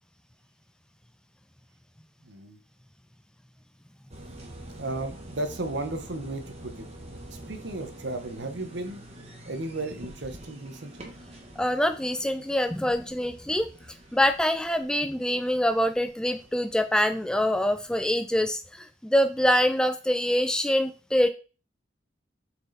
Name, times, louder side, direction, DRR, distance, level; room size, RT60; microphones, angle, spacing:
voice 1, 2.2-2.6 4.8-6.9 7.3-9.0 9.5-11.2, right 2 dB, 70° right, 8 dB, 1.1 m, -34 dB
sound 1, 4.1-18.1, right 1 dB, 35° right, 1.4 m, -47 dB
voice 2, 11.6-13.7 14.1-21.3, equal, 5° left, 9 dB, 0.3 m, -25 dB
6.5 x 4.6 x 4.1 m, 0.35 s
head